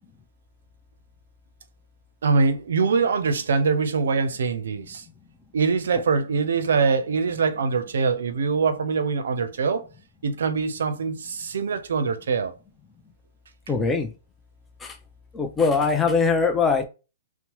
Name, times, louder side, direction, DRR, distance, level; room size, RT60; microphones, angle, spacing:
voice 1, 2.2-5.0 5.5-9.8 10.2-12.5, right 5 dB, 70° right, 0.5 m, -23 dB
voice 2, 13.7-14.1 14.8-14.9 15.3-16.8, left 4 dB, 10° left, 0.4 m, -21 dB
2.8 x 2.0 x 3.0 m
hypercardioid pair, 135°, 0 cm